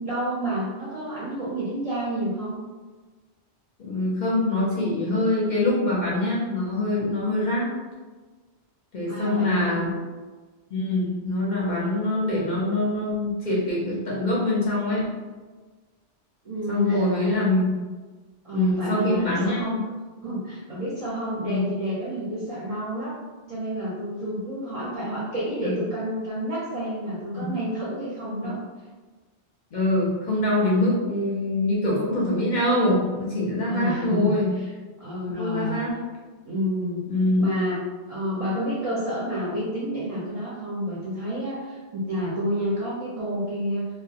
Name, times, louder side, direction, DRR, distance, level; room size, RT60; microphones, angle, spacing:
voice 1, 0.0-2.6 9.1-9.8 16.4-17.3 18.4-19.8 20.2-23.1 23.5-28.6 33.6-34.7 35.0-35.8 36.4-37.0 37.3-37.8 38.1-43.9, equal, 40° right, -9 dB, 0.5 m, -29 dB
voice 2, 3.8-7.7 8.9-9.9 10.7-15.0 16.7-17.7 18.5-19.6 21.5-21.7 25.6-25.8 27.4-27.5 28.4-28.5 29.7-34.5 35.4-35.9 37.1-37.6, left 1 dB, 50° left, -6 dB, 0.6 m, -24 dB
2.1 x 2.1 x 2.7 m, 1.3 s
omnidirectional pair, 1.2 m